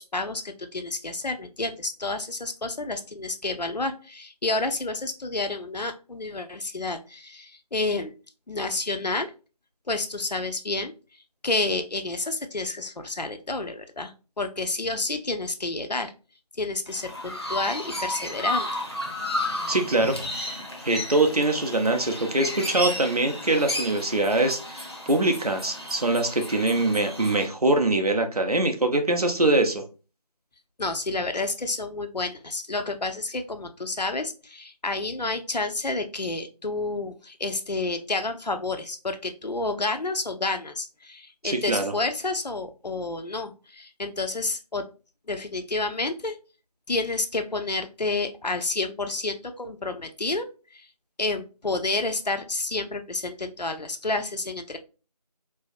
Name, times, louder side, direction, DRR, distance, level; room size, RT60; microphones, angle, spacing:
voice 1, 0.0-8.1 8.5-9.3 9.9-10.9 11.4-16.1 16.6-18.8 30.8-44.8 45.3-46.4 46.9-50.5 50.7-50.9 51.2-54.8, left 2 dB, 85° left, 7 dB, 0.7 m, -30 dB
Chirp tweet, 16.9-27.5, left 1 dB, 40° left, 0.7 m, -33 dB
voice 2, 19.7-20.2 20.8-29.8 41.4-41.9, right 2 dB, 65° right, 5 dB, 0.7 m, -23 dB
4.5 x 2.1 x 2.5 m, 0.33 s
figure-of-eight pair, 175°, 21 cm